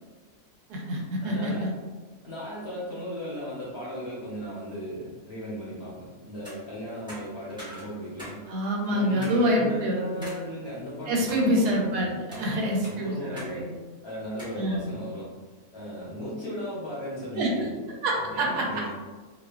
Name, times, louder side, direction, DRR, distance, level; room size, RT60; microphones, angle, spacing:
voice 1, 0.7-1.7 8.5-10.3 11.1-13.7 14.5-14.9 17.3-18.7, equal, 80° right, -2 dB, 1.1 m, -26 dB
voice 2, 1.2-1.7 2.2-8.4 8.9-13.6 14.0-15.3 15.7-17.7 18.1-18.9, equal, 55° left, -8 dB, 0.8 m, -37 dB
sound 1, 6.3-6.6 7.1-8.4 8.7-8.8 9.2-9.4 10.2-10.4 10.9-11.4 12.1-12.4 12.8-13.5 13.8-13.9 14.4-14.6, equal, 5° right, 0.5 m, -43 dB
2.6 x 2.3 x 2.3 m, 1.3 s
omnidirectional pair, 1.6 m